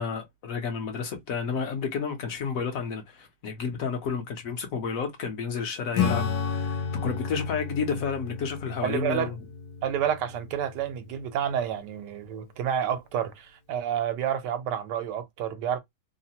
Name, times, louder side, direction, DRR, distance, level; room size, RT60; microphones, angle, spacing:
voice 1, 0.0-9.3, left 5 dB, 65° left, 1.0 m, -31 dB
Acoustic guitar / Strum, 5.9-11.9, left 6 dB, 80° left, 1.3 m, -32 dB
voice 2, 8.8-9.3 9.8-15.8, right 9 dB, 85° right, 1.2 m, -29 dB
3.1 x 2.1 x 2.7 m
omnidirectional pair, 1.8 m